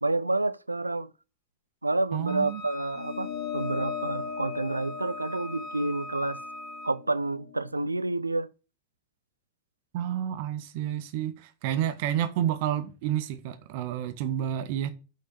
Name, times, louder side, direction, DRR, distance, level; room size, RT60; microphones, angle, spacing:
voice 1, 0.0-1.1 1.8-6.4 6.8-8.5, right 2 dB, 85° right, 0.4 m, -29 dB
voice 2, 2.1-2.6 9.9-14.9, right 10 dB, 50° right, 0.7 m, -30 dB
Wind instrument woodwind instrument, 2.3-7.0, equal, 35° left, 1.4 m, -42 dB
sound 1, 2.9-7.7, left 8 dB, 55° left, 2.3 m, -38 dB
5.9 x 5.5 x 6.6 m
figure-of-eight pair, 90°, 0 cm